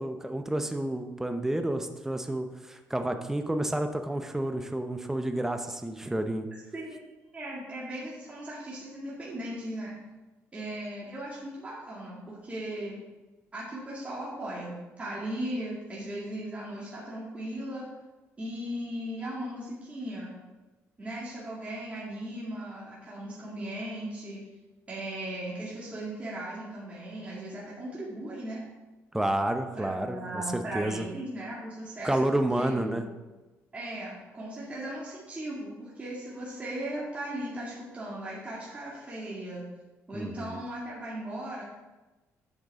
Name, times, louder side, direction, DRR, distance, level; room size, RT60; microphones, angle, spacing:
voice 1, 0.0-6.5 29.1-31.1 32.0-33.0 40.1-40.6, right 1 dB, 5° right, 7 dB, 0.7 m, -30 dB
voice 2, 6.7-7.0 7.3-9.9 10.5-12.9 13.5-17.8 18.4-20.3 21.0-24.4 24.9-28.6 29.8-32.2 32.5-33.1 33.7-39.6 40.1-41.6, right 1 dB, 25° right, -7 dB, 2.2 m, -37 dB
8.0 x 6.5 x 3.7 m, 1.1 s
cardioid pair, 100°, 6 cm